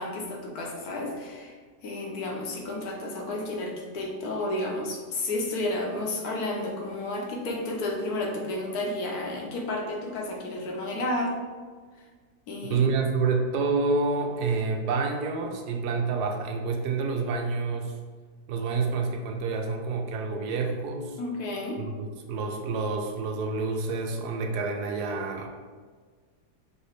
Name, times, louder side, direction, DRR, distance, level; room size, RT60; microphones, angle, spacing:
voice 1, 0.0-11.4 12.0-12.1 12.5-12.8 21.2-21.8, left 2 dB, 70° left, 0 dB, 1.2 m, -32 dB
voice 2, 12.7-17.9 18.5-21.2 21.8-25.5, right 4 dB, 85° right, 2 dB, 1.2 m, -28 dB
5.5 x 2.7 x 3.2 m, 1.5 s
omnidirectional pair, 1.7 m